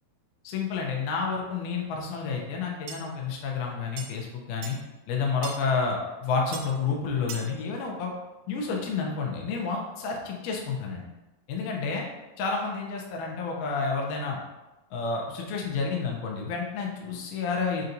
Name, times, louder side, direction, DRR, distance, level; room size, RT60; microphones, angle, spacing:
voice 1, 0.4-4.8 5.1-8.1 8.5-11.0 11.5-12.1 12.4-14.4 14.9-17.8, left 5 dB, 75° left, 0 dB, 2.1 m, -30 dB
sound 1, 2.9-3.0 4.0-4.1 4.6-4.8 5.4-5.6 6.5-6.7 7.3-7.5, right 5 dB, 85° right, 2.2 m, -38 dB
5.5 x 2.7 x 2.5 m, 1.0 s
omnidirectional pair, 3.8 m